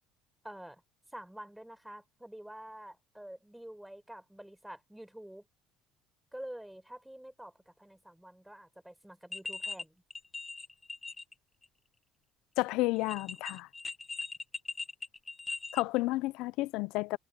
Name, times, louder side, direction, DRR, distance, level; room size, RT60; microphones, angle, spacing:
voice 1, 0.4-0.8 1.1-5.4 6.3-10.0, right 1 dB, 5° right, 5.0 m, -48 dB
sound 1, 9.3-9.8 10.1-11.3 11.6-11.7 13.0-15.8, left 3 dB, 20° left, 1.2 m, -40 dB
voice 2, 12.6-13.7 15.7-17.2, left 20 dB, 75° left, 0.5 m, -31 dB
supercardioid pair, 95°, 0 cm